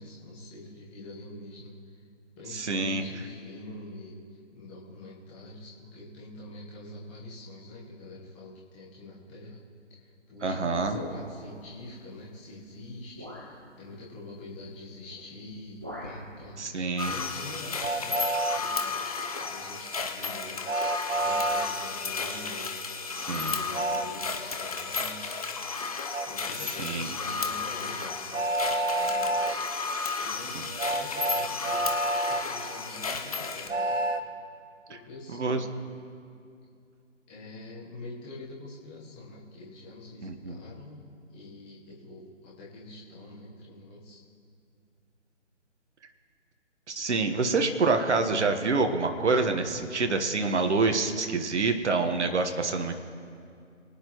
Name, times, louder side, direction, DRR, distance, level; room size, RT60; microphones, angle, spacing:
voice 1, 0.0-2.0 2.4-9.6 10.0-18.2 18.5-25.4 26.2-32.0 32.3-34.0 34.9-35.7 37.3-44.2, left 2 dB, 10° left, -8 dB, 1.1 m, -45 dB
voice 2, 2.5-3.0 10.4-11.0 16.6-17.1 23.2-23.6 26.8-27.1 30.5-30.7 35.3-35.6 40.2-40.6 46.9-52.9, right 3 dB, 65° right, 6 dB, 1.4 m, -27 dB
sound 1, 10.8-11.6 12.5-12.6 13.1-13.6 15.0-15.2 15.5-16.3, left 1 dB, 10° right, 0.6 m, -41 dB
sound 2, 17.0-33.7, left 4 dB, 30° left, 0.8 m, -33 dB
Train, 17.8-18.6 20.7-21.7 23.7-24.1 26.1-26.3 28.3-29.6 30.8-32.4 33.7-34.2, right 2 dB, 90° right, 1.1 m, -28 dB
23.5 x 9.9 x 3.1 m, 2.5 s
hypercardioid pair, 165°, 37 cm